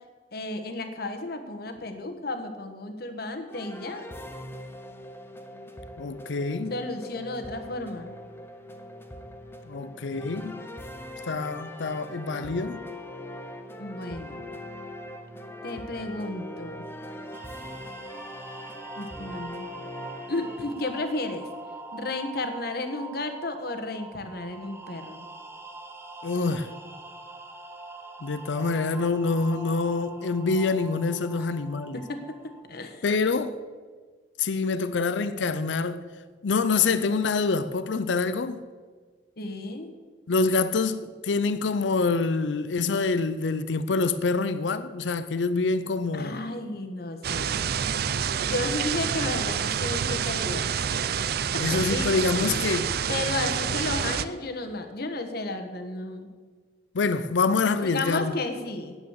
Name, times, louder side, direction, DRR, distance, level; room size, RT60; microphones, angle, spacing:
voice 1, 0.3-4.0 6.7-8.1 13.8-14.4 15.6-16.9 19.0-19.7 20.3-21.5 21.9-25.3 31.4-31.5 31.9-32.3 32.7-33.0 39.4-39.9 46.1-47.6 48.4-51.0 51.5-52.1 52.4-52.7 53.1-56.3 57.8-59.0, left 2 dB, 60° left, 1.3 m, -33 dB
sound 1, 3.5-20.6, left 1 dB, 15° left, 0.9 m, -41 dB
voice 2, 6.0-6.7 9.6-10.6 11.2-12.8 26.2-26.7 28.2-32.0 33.0-33.6 34.4-36.1 36.4-38.6 40.3-46.4 51.6-52.9 56.9-58.3, left 4 dB, 85° left, 0.6 m, -26 dB
sound 2, 17.3-32.6, right 3 dB, 15° right, 0.9 m, -43 dB
sound 3, 47.2-54.3, right 7 dB, 60° right, 0.5 m, -28 dB
9.5 x 9.1 x 7.2 m
head